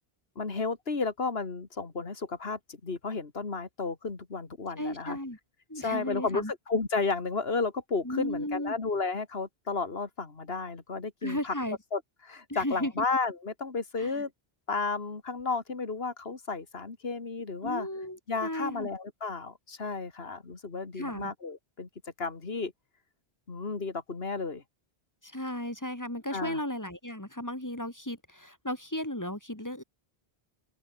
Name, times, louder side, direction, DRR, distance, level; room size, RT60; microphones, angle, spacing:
voice 1, 0.4-5.2 5.8-11.5 11.9-14.3 14.7-17.9 18.3-21.9 22.2-22.7 23.5-24.6 26.3-26.6, left 4 dB, 75° left, 2.5 m, -33 dB
voice 2, 4.8-5.4 5.7-6.5 8.0-8.8 11.2-11.8 12.5-13.0 14.0-14.2 17.6-18.9 21.0-21.3 25.2-29.8, left 1 dB, 15° left, 2.9 m, -35 dB
open air
omnidirectional pair, 1.0 m